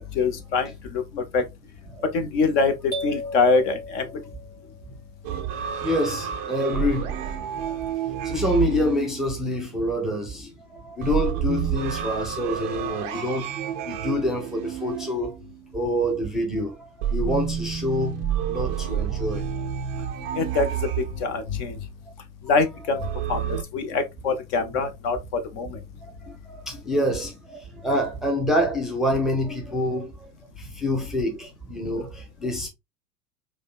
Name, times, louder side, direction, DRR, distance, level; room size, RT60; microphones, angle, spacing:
voice 1, 0.1-1.0 1.3-1.4 2.1-2.7 3.0-4.0 20.3-21.8 22.4-25.8, left 4 dB, 45° left, 0.9 m, -24 dB
sound 1, 2.9-4.8, left 1 dB, 20° left, 1.5 m, -35 dB
sound 2, 5.2-9.9 11.0-15.8 17.0-21.7 23.0-23.6, right 9 dB, 25° right, 0.3 m, -29 dB
voice 2, 5.8-7.3 7.6-7.7 8.1-13.5 13.8-15.4 15.7-19.4 23.0-23.1 23.9-24.0 26.0-30.1 30.6-32.7, left 1 dB, ahead, 0.7 m, -27 dB
4.9 x 2.4 x 2.4 m
figure-of-eight pair, 90°, 47 cm